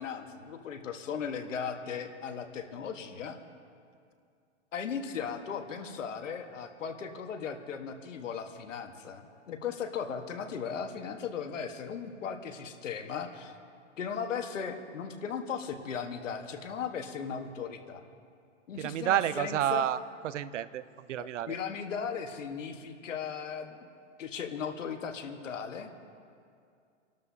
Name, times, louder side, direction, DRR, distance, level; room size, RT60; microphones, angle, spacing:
voice 1, 0.0-3.4 4.7-13.5 14.0-18.1 18.7-19.9 21.2-23.8 24.2-25.9, left 6 dB, 85° left, 6 dB, 1.5 m, -37 dB
voice 2, 18.8-21.6, right 11 dB, 75° right, 16 dB, 0.7 m, -30 dB
29.5 x 12.5 x 2.8 m, 2.3 s
hypercardioid pair, 150°, 37 cm